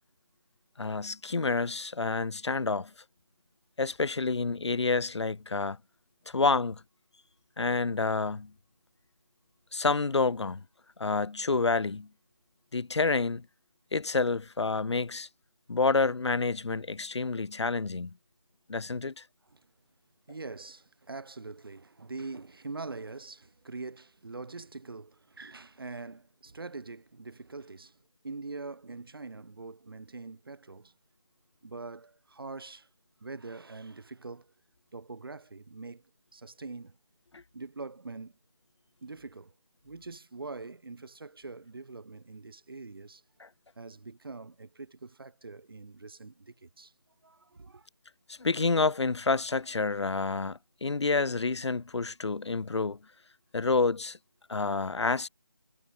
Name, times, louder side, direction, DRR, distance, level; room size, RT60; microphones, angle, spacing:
voice 1, 0.8-2.9 3.8-5.8 6.3-6.8 7.6-8.5 9.7-10.6 11.0-12.1 12.7-13.4 13.9-15.3 15.7-18.1 18.7-19.2 37.3-37.4 48.3-53.0 53.5-54.2 54.5-55.3, left 4 dB, 90° left, 0.4 m, -28 dB
voice 2, 20.3-28.0 28.2-30.9 31.6-32.9 33.2-34.5 34.9-36.0 36.3-37.0 37.5-38.3 39.0-39.5 39.8-43.2 43.8-46.9 47.2-47.9, right 3 dB, 55° right, 1.0 m, -43 dB
figure-of-eight pair, 160°, 14 cm